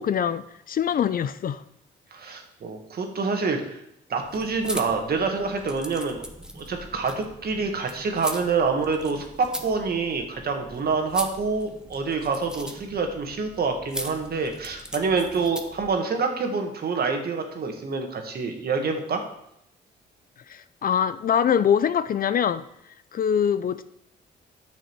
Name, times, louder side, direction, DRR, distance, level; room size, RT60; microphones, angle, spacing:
voice 1, 0.0-1.6 20.5-22.6 23.1-23.8, left 8 dB, 45° left, 13 dB, 0.5 m, -23 dB
voice 2, 2.1-3.8 4.1-6.2 6.5-19.2, right 4 dB, 50° right, 4 dB, 1.7 m, -27 dB
sound 1, 4.2-15.9, equal, 5° right, 1.0 m, -39 dB
9.7 x 6.4 x 4.6 m, 0.79 s
cardioid pair, 90°, 20 cm